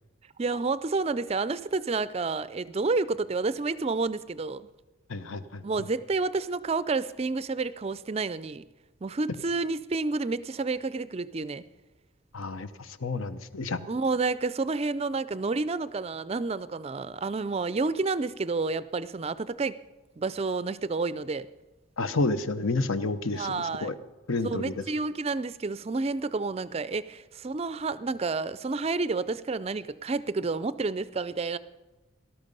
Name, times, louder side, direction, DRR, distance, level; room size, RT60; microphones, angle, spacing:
voice 1, 0.4-4.7 5.6-8.7 9.0-11.6 13.9-19.8 20.2-21.5 23.3-23.9 24.4-31.6, right 3 dB, 30° right, 16 dB, 0.4 m, -30 dB
voice 2, 5.1-5.6 12.3-13.8 22.0-23.9 24.3-24.8, left 3 dB, 75° left, 12 dB, 0.8 m, -30 dB
18.5 x 12.5 x 5.4 m, 1.1 s
head